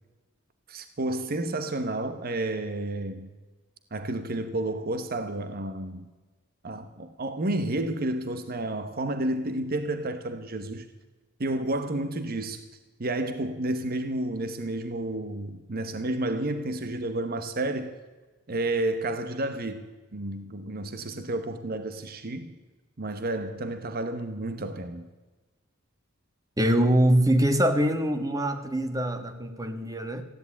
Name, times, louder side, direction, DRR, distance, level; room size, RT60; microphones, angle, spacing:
voice 1, 0.7-3.3 3.9-6.1 6.6-10.9 11.4-12.6 13.0-17.9 18.5-22.5 23.0-25.1, right 2 dB, 45° right, 1.0 m, -31 dB
voice 2, 26.6-30.2, right 1 dB, 15° right, 1.3 m, -23 dB
15.5 x 10.5 x 8.5 m
head